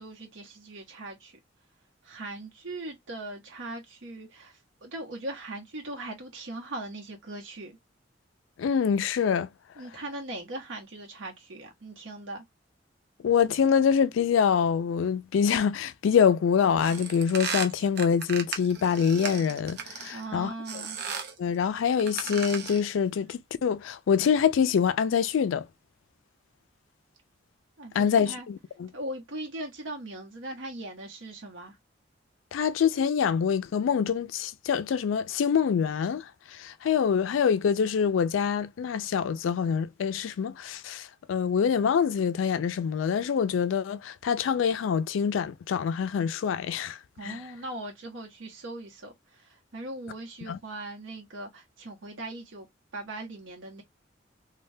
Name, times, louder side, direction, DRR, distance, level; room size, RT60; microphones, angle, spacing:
voice 1, 0.0-1.3 2.0-7.8 9.8-12.4 20.1-21.0 27.8-28.5 28.9-31.8 47.1-52.7 52.9-53.8, right 2 dB, 80° right, 0.8 m, -39 dB
voice 2, 8.6-9.5 13.2-20.5 21.4-25.7 27.9-28.9 32.5-36.2 36.5-47.0 47.2-47.4 50.5-50.6, left 7 dB, 90° left, 0.3 m, -25 dB
sound 1, 16.8-20.2 20.7-21.4 21.9-22.9, right 6 dB, 60° right, 0.7 m, -36 dB
3.2 x 2.2 x 2.6 m
head